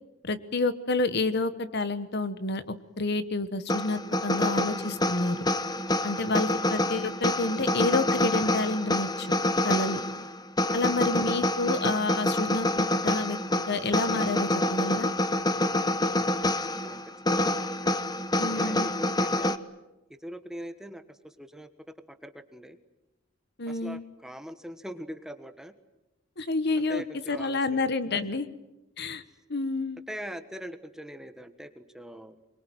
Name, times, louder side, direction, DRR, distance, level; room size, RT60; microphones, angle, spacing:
voice 1, 0.2-2.6 3.0-5.5 6.0-9.3 9.6-10.0 10.7-12.7 13.0-13.4 13.7-15.1 18.4-18.9 23.6-24.0 26.4-28.5 29.0-29.2 29.5-30.0, left 3 dB, 55° left, 12 dB, 1.3 m, -29 dB
sound 1, 3.7-19.6, left 1 dB, 20° left, 1.0 m, -27 dB
voice 2, 11.2-11.5 16.8-17.0 18.4-19.5 20.1-21.7 22.1-22.8 23.7-25.7 26.8-27.9 30.1-32.4, equal, 5° right, 9 dB, 1.4 m, -42 dB
24.5 x 22.5 x 9.3 m, 0.99 s
head